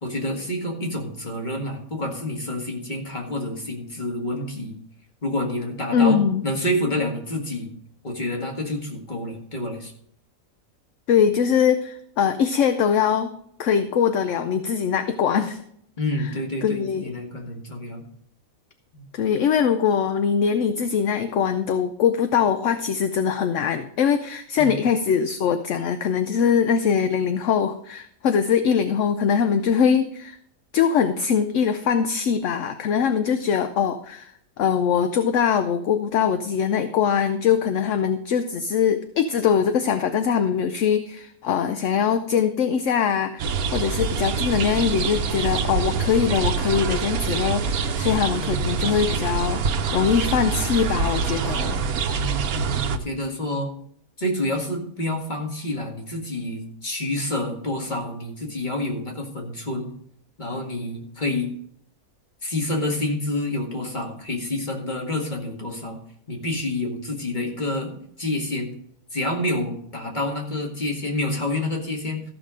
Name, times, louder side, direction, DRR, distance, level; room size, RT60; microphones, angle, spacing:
voice 1, 0.0-4.8 5.2-7.7 8.0-9.9 16.0-18.0 18.9-19.1 24.6-24.8 48.4-48.9 52.2-53.7 54.2-59.9 60.4-61.5 62.4-66.0 66.3-67.9 68.2-68.7 69.1-72.2, left 1 dB, 30° left, 1 dB, 2.0 m, -28 dB
voice 2, 5.9-6.5 11.1-13.3 13.6-15.6 16.6-17.1 19.1-30.4 30.7-49.6 49.9-51.8, left 7 dB, 65° left, 9 dB, 0.9 m, -22 dB
sound 1, 43.4-53.0, right 5 dB, 85° right, 1.2 m, -25 dB
14.0 x 6.0 x 5.0 m, 0.67 s
omnidirectional pair, 1.5 m